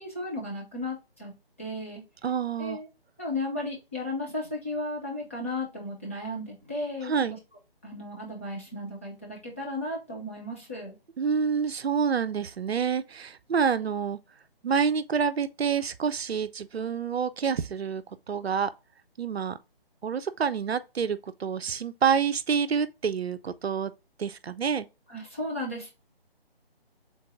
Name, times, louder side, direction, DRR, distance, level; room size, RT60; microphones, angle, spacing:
voice 1, 0.0-1.3 1.6-2.0 2.6-2.9 3.2-7.1 7.8-11.0 25.1-25.9, left 1 dB, 15° left, 0.5 m, -34 dB
voice 2, 2.2-2.8 7.0-7.3 11.2-14.2 14.6-18.7 19.2-19.6 20.0-23.9 24.2-24.9, right 6 dB, 80° right, 0.5 m, -27 dB
3.8 x 2.5 x 4.6 m
figure-of-eight pair, 150°, 31 cm